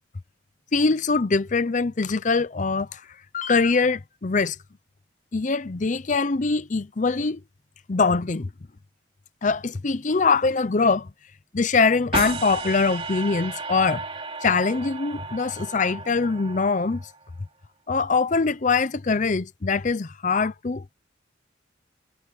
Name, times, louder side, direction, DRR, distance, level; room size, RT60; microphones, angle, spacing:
voice 1, 0.7-3.0 3.3-4.6 5.3-7.4 7.9-8.5 9.4-11.1 11.5-14.0 14.4-17.0 17.9-20.8, left 4 dB, 40° left, 0.6 m, -23 dB
sound 1, 12.1-17.3, right 4 dB, 30° right, 3.1 m, -34 dB
head